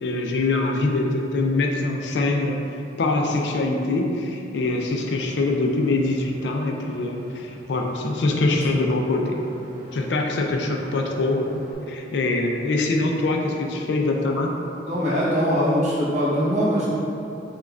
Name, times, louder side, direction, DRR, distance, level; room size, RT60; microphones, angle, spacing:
voice 1, 0.0-2.6 3.0-9.4 9.9-14.5, left 2 dB, 70° left, 2 dB, 0.4 m, -23 dB
Engine, 4.6-11.7, equal, 70° right, 1.2 m, -44 dB
voice 2, 14.8-16.9, equal, 40° right, -8 dB, 0.9 m, -22 dB
5.9 x 2.3 x 2.3 m, 2.8 s
head